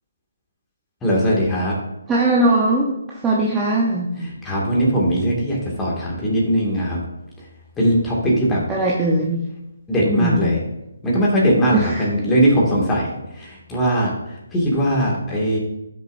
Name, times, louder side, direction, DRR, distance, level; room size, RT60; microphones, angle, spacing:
voice 1, 1.0-1.7 4.2-7.0 7.8-8.6 9.9-10.6 11.0-14.1 14.5-15.6, equal, 10° left, -5 dB, 2.3 m, -20 dB
voice 2, 2.1-2.9 3.2-4.1 8.7-9.4 10.0-10.5 11.7-12.1, right 2 dB, 10° right, -4 dB, 0.9 m, -19 dB
11.5 x 6.4 x 2.7 m, 0.90 s
figure-of-eight pair, 150°, 0 cm